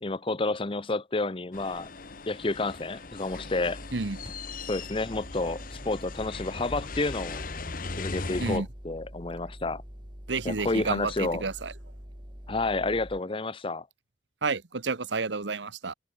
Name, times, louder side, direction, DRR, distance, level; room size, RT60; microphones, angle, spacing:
voice 1, 0.0-1.9 2.3-3.8 4.7-7.4 8.0-9.8 10.4-11.4 12.5-13.9, left 2 dB, 30° left, 0.8 m, -30 dB
sound 1, 1.5-8.6, left 3 dB, 50° left, 1.3 m, -39 dB
sound 2, 3.3-13.2, equal, 25° right, 5.5 m, -45 dB
voice 2, 10.3-11.7 14.4-15.9, right 4 dB, 80° right, 1.2 m, -30 dB
head